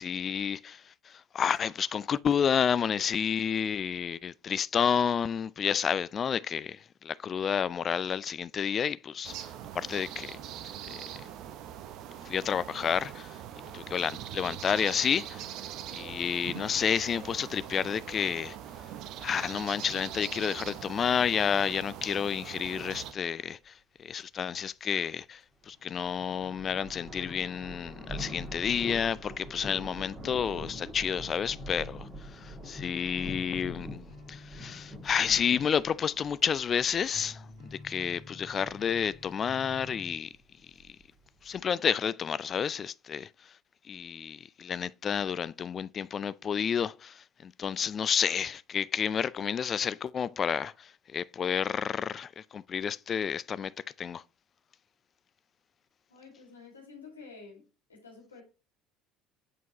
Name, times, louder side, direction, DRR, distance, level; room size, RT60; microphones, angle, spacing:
voice 1, 0.0-10.4 10.9-11.0 12.2-13.4 13.7-15.5 15.9-18.6 19.2-40.3 41.4-43.5 43.8-53.7 54.0-54.2, left 7 dB, 35° left, 0.3 m, -30 dB
sound 1, 9.2-23.1, right 10 dB, 55° right, 0.6 m, -42 dB
sound 2, 25.6-41.6, equal, 30° right, 2.6 m, -44 dB
sound 3, 34.1-40.2, left 2 dB, 75° right, 2.4 m, -50 dB
voice 2, 56.1-57.6 57.9-58.4, left 4 dB, 85° left, 2.0 m, -50 dB
8.0 x 4.6 x 2.9 m
figure-of-eight pair, 60°, 0 cm